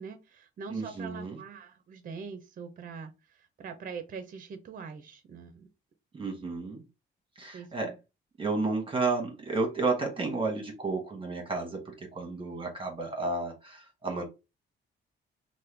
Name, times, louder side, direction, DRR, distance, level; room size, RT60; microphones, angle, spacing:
voice 1, 0.0-5.7 7.5-8.0, right 5 dB, 45° right, 9 dB, 0.6 m, -43 dB
voice 2, 0.7-1.4 6.1-6.8 7.4-7.9 8.4-14.2, right 3 dB, 25° right, 1 dB, 1.1 m, -32 dB
3.0 x 2.2 x 3.3 m, 0.26 s
cardioid pair, 90°, 20 cm